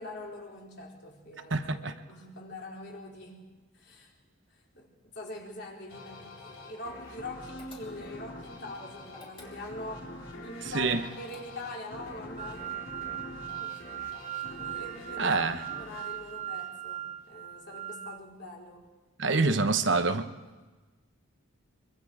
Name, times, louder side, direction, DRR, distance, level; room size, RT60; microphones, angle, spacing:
voice 1, 0.0-3.4 3.7-4.1 4.5-10.1 10.4-12.7 13.6-13.8 14.6-15.3 15.8-18.9, left 1 dB, 50° left, 4.1 m, -43 dB
voice 2, 1.5-1.9 10.7-11.0 15.2-15.6 19.2-20.3, right 3 dB, 60° right, 1.0 m, -26 dB
sound 1, 5.9-17.1, left 1 dB, 65° left, 4.1 m, -46 dB
sound 2, 7.6-8.3 9.1-10.0 10.9-11.8, left 3 dB, 25° left, 3.0 m, -53 dB
sound 3, 12.4-18.2, right 12 dB, 35° right, 0.8 m, -39 dB
24.5 x 24.0 x 4.9 m
head